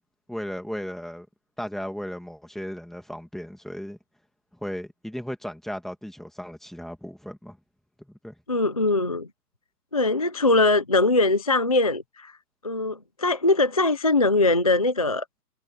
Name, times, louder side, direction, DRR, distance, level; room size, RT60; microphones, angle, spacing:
voice 1, 0.3-1.3 1.6-4.0 4.6-7.6 8.0-8.3, equal, ahead, 2.0 m, -35 dB
voice 2, 8.5-9.3 9.9-12.3 12.6-15.2, left 2 dB, 25° left, 0.3 m, -21 dB
hypercardioid pair, 155°, 49 cm